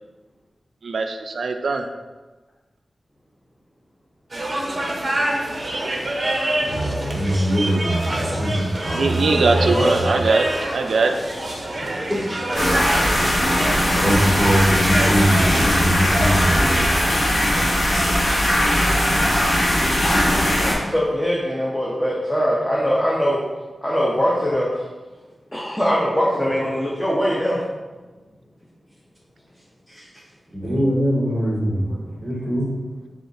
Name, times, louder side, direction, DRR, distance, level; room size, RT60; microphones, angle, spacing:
voice 1, 0.8-1.9 8.9-10.5 10.7-11.1, right 4 dB, 90° right, 6 dB, 0.3 m, -21 dB
sound 1, 4.3-16.6, right 1 dB, 40° right, 0.6 m, -27 dB
voice 2, 6.6-10.2 13.9-16.9 30.5-31.8 32.2-32.7, equal, 5° right, -6 dB, 1.0 m, -22 dB
voice 3, 9.5-10.0 20.6-23.4 23.8-24.7 25.5-27.6 29.9-30.0 31.7-32.0, equal, 10° left, -5 dB, 0.6 m, -22 dB
sound 2, 12.5-20.7, left 1 dB, 50° left, 1.2 m, -19 dB
4.3 x 2.4 x 3.8 m, 1.2 s
wide cardioid pair, 120°, 0 cm